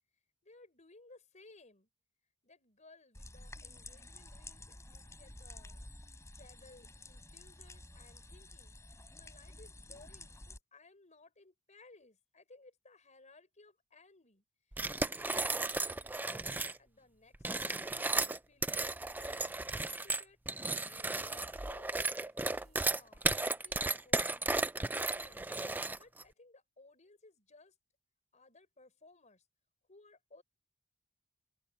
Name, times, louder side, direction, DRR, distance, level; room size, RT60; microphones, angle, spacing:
voice 1, 0.4-1.9 2.4-5.9 6.3-8.7 9.1-18.0 18.5-20.4 20.9-24.5 25.0-27.8 28.3-29.4 29.9-30.4, left 2 dB, 35° left, 5.2 m, -61 dB
sound 1, 3.1-10.6, left 2 dB, 15° left, 4.6 m, -51 dB
sound 2, 14.7-16.8 17.3-26.2, right 3 dB, 10° right, 0.4 m, -34 dB
sound 3, 22.5-23.8, right 1 dB, 50° right, 6.5 m, -62 dB
open air
head